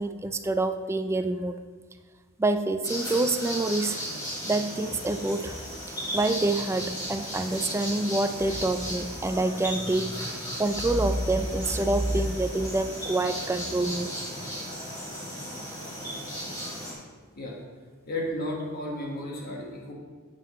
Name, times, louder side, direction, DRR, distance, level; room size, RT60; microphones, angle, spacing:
voice 1, 0.0-1.6 2.4-4.0 4.5-5.6 6.1-14.1, right 2 dB, 10° right, 9 dB, 0.3 m, -27 dB
sound 1, 2.8-16.9, equal, 20° left, 2.7 m, -36 dB
voice 2, 18.1-19.9, left 1 dB, 45° left, -2 dB, 1.5 m, -33 dB
10.0 x 7.7 x 3.1 m, 1.5 s
head